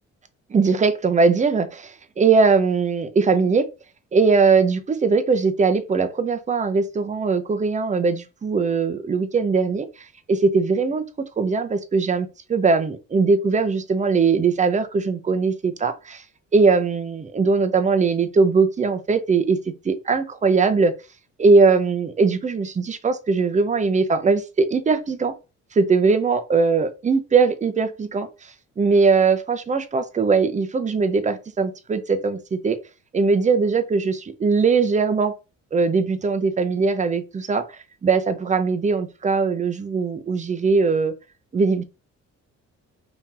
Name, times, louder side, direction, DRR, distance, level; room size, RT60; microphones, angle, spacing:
voice 1, 0.5-3.7 4.1-9.9 10.3-11.0 11.4-16.2 16.5-19.6 19.8-20.9 21.4-25.3 25.7-32.8 33.1-35.3 35.7-41.1 41.5-41.8, right 4 dB, 25° right, 0.6 m, -20 dB
2.9 x 2.6 x 3.7 m
cardioid pair, 90°, 30 cm